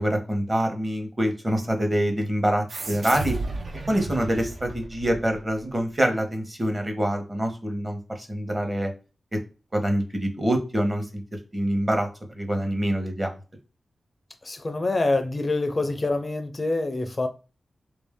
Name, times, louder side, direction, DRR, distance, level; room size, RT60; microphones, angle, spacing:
voice 1, 0.0-3.4 3.9-8.9 9.3-9.4 9.7-11.2 11.5-12.1 12.3-13.3, right 1 dB, 20° right, 1.0 m, -25 dB
sound 1, 2.7-5.7, right 3 dB, 65° right, 0.5 m, -34 dB
voice 2, 14.4-17.3, left 2 dB, 35° left, 0.4 m, -26 dB
3.4 x 2.6 x 3.5 m
wide cardioid pair, 80°, 0 cm